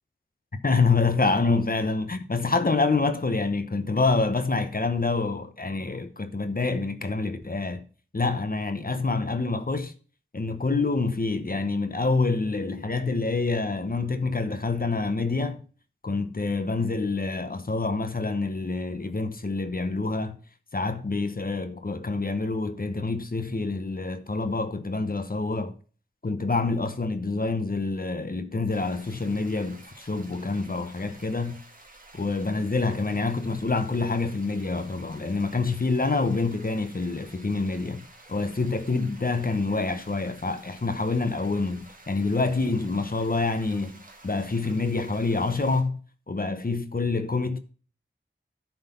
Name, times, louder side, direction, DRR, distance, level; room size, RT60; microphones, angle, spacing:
voice 1, 0.6-7.8 8.1-9.9 10.3-15.6 16.0-20.4 20.7-25.7 26.2-31.6 32.1-38.0 38.3-46.0 46.3-47.6, left 3 dB, 45° left, 0.9 m, -27 dB
sound 1, 28.7-45.8, right 2 dB, 45° right, 1.6 m, -51 dB
11.0 x 4.0 x 5.4 m
wide cardioid pair, 60°, 20 cm